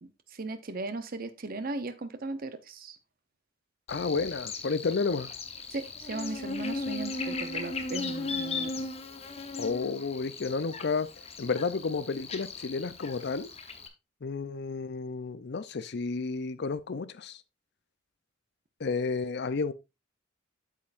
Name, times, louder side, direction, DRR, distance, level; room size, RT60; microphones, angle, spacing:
voice 1, 0.0-3.0 5.7-8.7, right 3 dB, 50° right, 0.8 m, -37 dB
voice 2, 3.9-5.3 9.6-11.1 11.4-13.5 14.2-17.4 18.8-19.7, left 4 dB, 60° left, 0.5 m, -31 dB
Buzz, 3.9-13.9, left 3 dB, 30° left, 1.0 m, -37 dB
8.3 x 7.5 x 2.5 m
head